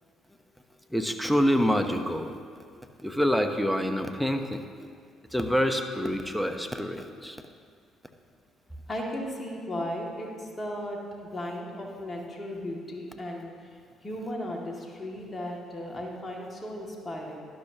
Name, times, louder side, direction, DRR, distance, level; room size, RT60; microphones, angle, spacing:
voice 1, 0.9-2.3 3.0-4.7 5.3-7.4, equal, ahead, 6 dB, 1.0 m, -26 dB
voice 2, 8.9-11.0 11.3-13.7 14.0-17.4, left 1 dB, 25° left, -1 dB, 2.3 m, -36 dB
12.0 x 11.5 x 3.0 m, 2.1 s
hypercardioid pair, 50°, 0 cm